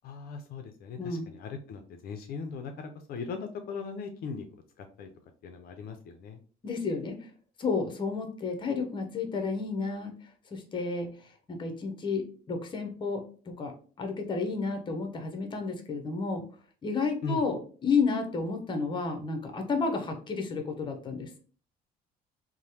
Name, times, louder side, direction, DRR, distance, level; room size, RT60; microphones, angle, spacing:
voice 1, 0.0-4.5 4.8-5.1 5.4-6.4 17.2-17.4, left 5 dB, 65° left, 5 dB, 0.4 m, -39 dB
voice 2, 6.6-7.2 7.6-10.1 10.5-11.1 11.5-13.2 13.6-16.4 16.8-21.3, left 4 dB, 30° left, 5 dB, 0.6 m, -31 dB
3.1 x 2.0 x 2.7 m, 0.41 s
cardioid pair, 110°, 17 cm